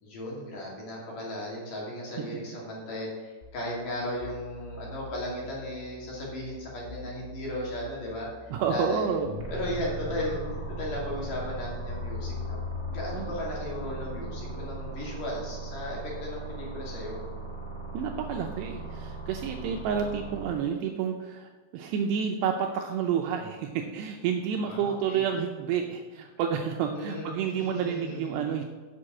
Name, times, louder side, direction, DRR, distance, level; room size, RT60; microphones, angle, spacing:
voice 1, 0.0-9.2 9.5-12.6 12.9-17.2 24.7-25.3 26.9-28.6, left 1 dB, 50° left, -4 dB, 3.6 m, -36 dB
sound 1, 3.4-14.8, left 6 dB, 85° left, 2.2 m, -43 dB
voice 2, 8.5-9.4 13.1-13.3 17.9-28.6, right 7 dB, 80° right, 3 dB, 2.5 m, -30 dB
sound 2, 9.4-20.5, right 4 dB, 55° right, 1.2 m, -38 dB
7.6 x 6.5 x 7.4 m, 1.4 s
omnidirectional pair, 5.4 m